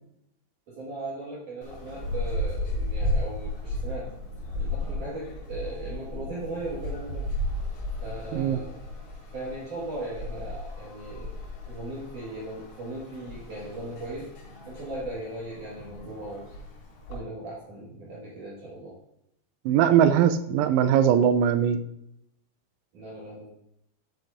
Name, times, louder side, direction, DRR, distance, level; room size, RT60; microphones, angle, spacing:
voice 1, 0.7-4.1 4.5-7.3 8.0-8.8 9.3-11.4 11.7-14.3 14.6-16.5 17.1-19.0 22.9-23.5, right 2 dB, 55° right, -7 dB, 2.4 m, -38 dB
sound 1, 1.6-17.2, left 1 dB, 70° left, 5.3 m, -34 dB
voice 2, 19.7-21.8, right 9 dB, 90° right, 10 dB, 3.3 m, -20 dB
12.0 x 7.6 x 2.6 m, 0.78 s
omnidirectional pair, 5.9 m